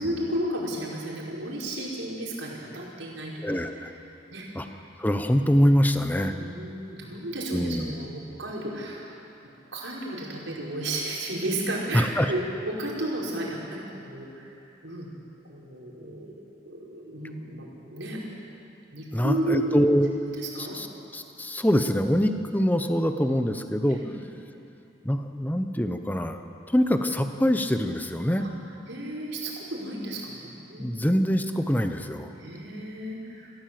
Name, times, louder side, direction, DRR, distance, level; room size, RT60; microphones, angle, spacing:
voice 1, 0.0-3.4 4.3-4.5 6.2-9.1 9.7-12.4 12.7-14.5 14.8-15.1 15.5-16.3 16.6-18.2 18.9-19.9 20.2-20.8 23.9-24.1 28.4-28.5 28.9-30.4 30.7-31.2 32.4-33.5, right 1 dB, 85° right, -4 dB, 5.2 m, -33 dB
voice 2, 3.4-3.9 4.5-4.7 5.0-6.4 7.5-7.9 11.9-12.3 19.1-20.1 20.6-20.9 21.1-24.0 25.0-26.4 26.7-28.5 30.8-32.3, equal, 10° left, 7 dB, 1.0 m, -24 dB
27.0 x 15.5 x 7.8 m, 2.9 s
head